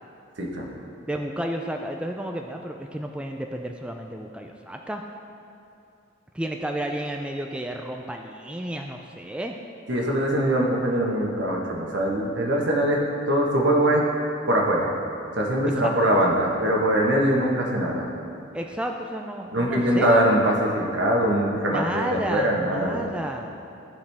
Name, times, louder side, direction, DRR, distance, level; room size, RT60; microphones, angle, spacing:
voice 1, 0.4-0.7 9.9-14.1 14.5-14.9 15.3-18.1 19.5-23.1, right 1 dB, 65° right, -1 dB, 1.3 m, -22 dB
voice 2, 1.1-5.0 6.3-9.6 15.8-16.1 18.5-20.2 21.7-23.5, right 1 dB, 5° right, 2 dB, 0.3 m, -32 dB
14.5 x 5.0 x 3.5 m, 2.6 s
head